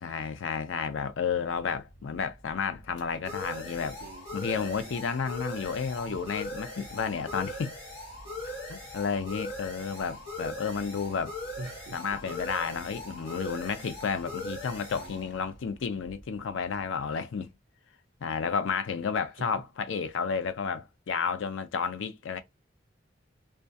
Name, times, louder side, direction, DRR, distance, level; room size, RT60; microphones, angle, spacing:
voice 1, 0.0-4.0 4.3-7.7 8.7-11.3 11.9-17.5 18.2-22.4, left 6 dB, 90° left, 0.4 m, -32 dB
sound 1, 1.5-16.8, left 2 dB, 70° left, 1.0 m, -41 dB
voice 2, 3.8-4.9 6.1-6.2 11.6-12.2 14.9-15.2 19.2-19.6, right 3 dB, 55° right, 0.3 m, -46 dB
2.3 x 2.3 x 2.6 m
head